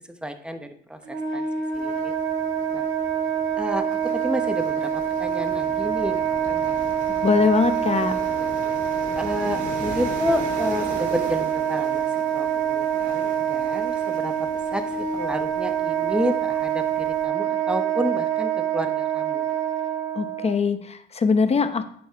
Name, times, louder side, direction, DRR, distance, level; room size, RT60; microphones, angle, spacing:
voice 1, 0.2-1.4 1.7-2.1 2.7-2.9 3.6-6.7 9.2-12.1 12.3-19.5, equal, 5° right, 7 dB, 0.8 m, -30 dB
Wind instrument woodwind instrument, 1.0-20.5, right 8 dB, 85° right, 1.8 m, -26 dB
sound 1, 1.7-17.2, right 3 dB, 40° right, 2.3 m, -40 dB
voice 2, 7.2-8.2 20.1-21.8, left 5 dB, 30° left, 10 dB, 0.8 m, -21 dB
9.6 x 6.3 x 3.5 m, 0.64 s
cardioid pair, 90°, 20 cm